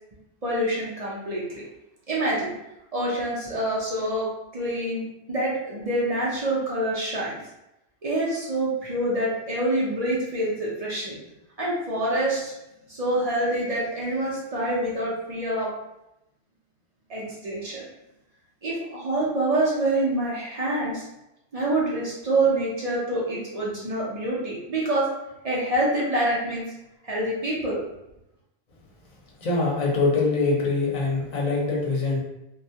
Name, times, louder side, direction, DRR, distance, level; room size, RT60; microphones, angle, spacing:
voice 1, 0.4-1.6 2.1-2.5 2.9-4.3 4.5-5.0 5.3-7.4 8.0-11.1 11.6-12.5 12.9-15.7 17.1-17.8 18.6-21.1 21.5-25.1 25.4-26.6 27.0-27.8, right 1 dB, 45° right, -6 dB, 0.6 m, -26 dB
voice 2, 29.4-32.2, left 3 dB, 45° left, -2 dB, 0.7 m, -23 dB
2.2 x 2.0 x 2.7 m, 0.88 s
omnidirectional pair, 1.1 m